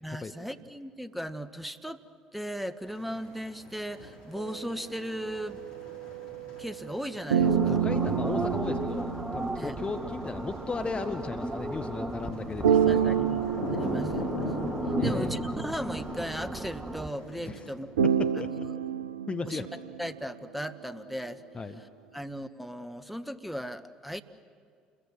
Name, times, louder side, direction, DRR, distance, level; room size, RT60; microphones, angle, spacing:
voice 1, 0.0-2.0 2.3-5.6 6.6-7.8 9.6-9.7 12.7-13.4 13.7-14.5 15.0-17.9 18.5-18.7 19.5-19.7 20.0-21.4 22.1-24.2, equal, ahead, 10 dB, 1.5 m, -37 dB
sound 1, 2.9-17.7, equal, 75° left, 5.2 m, -39 dB
sound 2, 4.4-7.0 7.3-10.9 12.6-16.3 18.0-20.2, right 8 dB, 80° right, 0.5 m, -29 dB
voice 2, 7.4-13.2 14.9-15.3 17.5-17.6 18.2-18.7 19.3-19.7 21.5-21.8, left 4 dB, 30° left, 8 dB, 1.4 m, -36 dB
sound 3, 7.4-17.1, right 2 dB, 20° right, 1.6 m, -35 dB
29.5 x 22.0 x 7.7 m, 2.2 s
hypercardioid pair, 55°, 4 cm